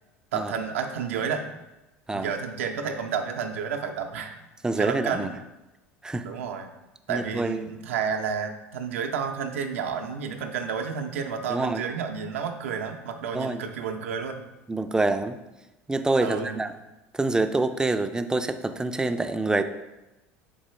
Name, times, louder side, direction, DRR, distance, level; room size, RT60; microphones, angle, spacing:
voice 1, 0.3-1.5 2.1-4.4 4.8-5.3 6.2-6.7 7.1-14.4 16.2-16.6, right 6 dB, 80° right, 4 dB, 0.5 m, -31 dB
voice 2, 4.6-5.3 6.0-6.3 7.1-7.7 11.5-11.8 13.3-13.6 14.7-15.4 15.9-16.7 17.1-19.6, right 2 dB, 10° right, 9 dB, 0.3 m, -26 dB
3.9 x 3.0 x 4.2 m, 0.99 s
hypercardioid pair, 80°, 7 cm